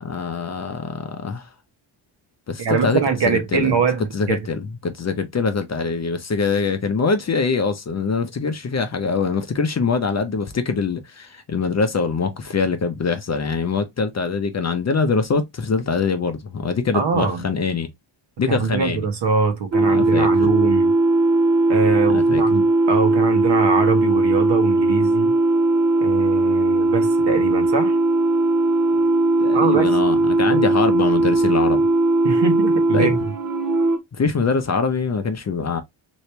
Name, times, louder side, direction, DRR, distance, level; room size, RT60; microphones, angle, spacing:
voice 1, 0.0-1.5 2.5-3.7 4.1-17.9 18.4-19.0 19.9-20.3 22.1-22.4 29.4-31.8 32.9-33.2 34.1-35.8, left 4 dB, 35° left, 0.7 m, -23 dB
voice 2, 2.6-4.4 16.9-17.4 18.5-20.9 21.7-25.3 26.0-28.0 29.5-29.9 30.5-30.6 32.2-33.2, right 5 dB, 55° right, 1.2 m, -23 dB
sound 1, 19.7-34.0, right 2 dB, 40° right, 0.8 m, -18 dB
3.2 x 2.9 x 3.1 m
cardioid pair, 90°, 50 cm